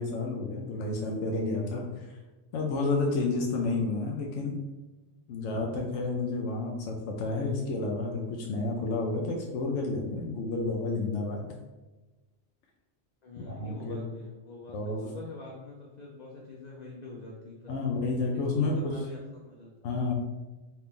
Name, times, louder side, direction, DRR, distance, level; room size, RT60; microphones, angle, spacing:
voice 1, 0.0-2.2 2.5-4.6 5.3-11.5 13.4-14.0 14.7-15.0 17.7-18.9 19.8-20.1, left 3 dB, 75° left, 0 dB, 0.9 m, -30 dB
voice 2, 13.2-17.8 18.3-19.7, left 3 dB, 50° left, -2 dB, 0.5 m, -45 dB
4.2 x 2.5 x 3.6 m, 1.2 s
omnidirectional pair, 1.3 m